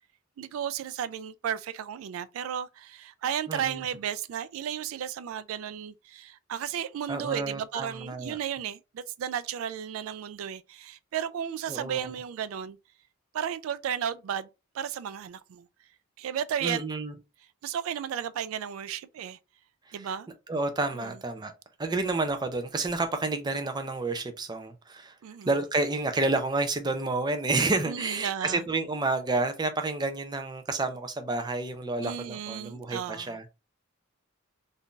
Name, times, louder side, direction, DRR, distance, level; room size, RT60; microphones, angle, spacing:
voice 1, 0.4-12.8 13.3-14.5 14.7-15.7 16.2-16.8 17.6-19.4 19.9-20.3 20.9-21.1 25.2-25.5 27.9-28.6 32.0-33.4, right 9 dB, 90° right, 0.3 m, -34 dB
voice 2, 3.5-3.9 7.1-8.4 11.7-12.1 16.6-17.1 19.9-20.1 20.5-21.5 21.8-25.2 25.5-33.5, right 3 dB, 20° right, 0.5 m, -30 dB
2.6 x 2.4 x 3.6 m
head